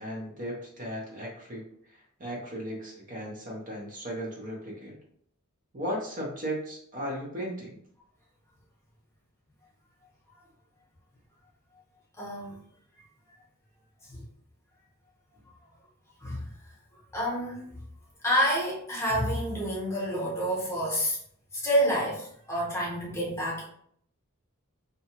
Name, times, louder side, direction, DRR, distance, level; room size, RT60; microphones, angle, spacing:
voice 1, 0.0-1.6 2.2-4.9 5.7-7.8, equal, 40° right, -2 dB, 0.6 m, -36 dB
voice 2, 12.2-12.6 14.1-14.2 16.2-16.5 17.1-17.7 18.2-21.2 21.5-23.6, equal, 15° left, -5 dB, 0.9 m, -28 dB
2.7 x 2.2 x 2.8 m, 0.66 s
head